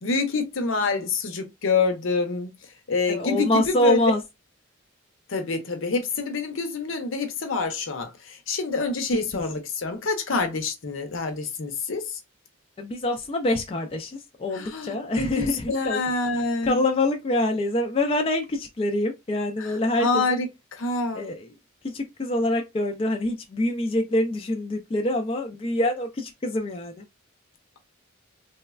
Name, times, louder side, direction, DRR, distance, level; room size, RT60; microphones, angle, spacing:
voice 1, 0.0-2.5 2.9-4.1 5.3-12.2 14.5-16.8 19.6-20.5 20.7-21.3, left 4 dB, 70° left, 0.7 m, -26 dB
voice 2, 3.1-4.2 9.1-9.2 12.8-16.0 16.6-20.4 21.1-21.5 21.8-27.0, left 1 dB, 25° left, 0.3 m, -25 dB
3.2 x 2.1 x 2.3 m
head